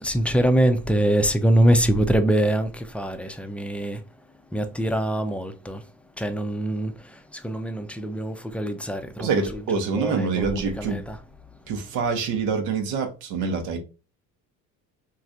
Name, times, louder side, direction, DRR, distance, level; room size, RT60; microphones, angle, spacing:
voice 1, 0.0-4.0 4.5-5.8 6.2-6.9 7.4-11.2, right 1 dB, 5° left, 0.4 m, -24 dB
voice 2, 9.2-11.0 11.7-13.8, right 5 dB, 80° right, 0.8 m, -26 dB
3.1 x 2.5 x 2.5 m
supercardioid pair, 65°, 41 cm